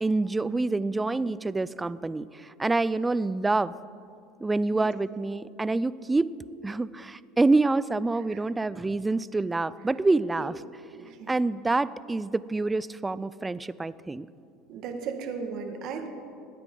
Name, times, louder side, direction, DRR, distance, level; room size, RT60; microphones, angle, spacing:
voice 1, 0.0-3.7 4.4-6.3 6.6-10.6 11.3-14.3, right 3 dB, 10° right, 17 dB, 0.3 m, -27 dB
voice 2, 11.0-11.3 14.7-16.1, right 5 dB, 55° right, 5 dB, 1.8 m, -36 dB
22.5 x 9.6 x 3.8 m, 2.5 s
supercardioid pair, 130°, 0 cm